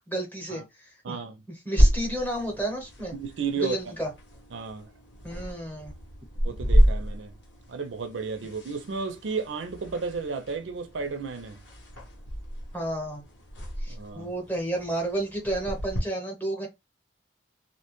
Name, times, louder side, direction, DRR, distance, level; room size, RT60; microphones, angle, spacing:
voice 1, 0.1-1.2 1.5-3.1 3.6-4.1 5.2-5.9 12.7-13.2 13.8-16.7, right 1 dB, 10° left, 0.8 m, -32 dB
voice 2, 1.0-1.4 3.1-3.8 4.5-4.9 6.4-7.3 7.7-11.6 13.9-14.3, right 5 dB, 85° right, 0.5 m, -33 dB
sound 1, 1.8-16.0, equal, 75° left, 0.9 m, -29 dB
2.6 x 2.1 x 2.9 m
head